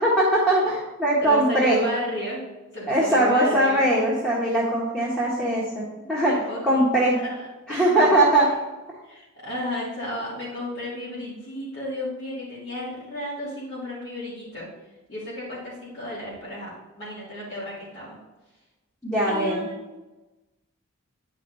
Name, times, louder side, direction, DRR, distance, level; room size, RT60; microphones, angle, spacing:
voice 1, 0.0-1.8 2.9-6.3 6.6-7.2 7.7-8.5 19.0-19.6, right 1 dB, 5° left, -8 dB, 1.5 m, -21 dB
voice 2, 1.2-2.4 2.7-3.9 5.9-6.8 7.2-8.2 9.0-14.7 15.1-18.2 19.3-19.9, equal, 60° left, -12 dB, 3.1 m, -33 dB
9.8 x 5.3 x 4.1 m, 1.1 s
head